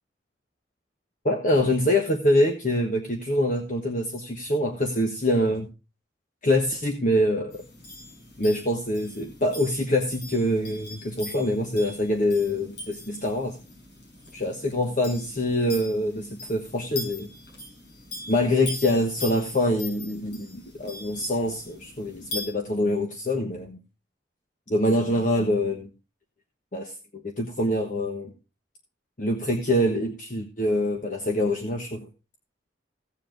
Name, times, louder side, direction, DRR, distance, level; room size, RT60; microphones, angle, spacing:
voice 1, 1.2-5.7 6.4-7.6 8.4-13.6 14.3-17.3 18.3-23.8 24.7-25.9 26.7-28.3 29.2-32.1, left 1 dB, 45° left, 3 dB, 1.3 m, -25 dB
sound 1, 7.5-22.5, left 2 dB, 70° left, 6.1 m, -41 dB
16.5 x 7.2 x 3.8 m, 0.31 s
head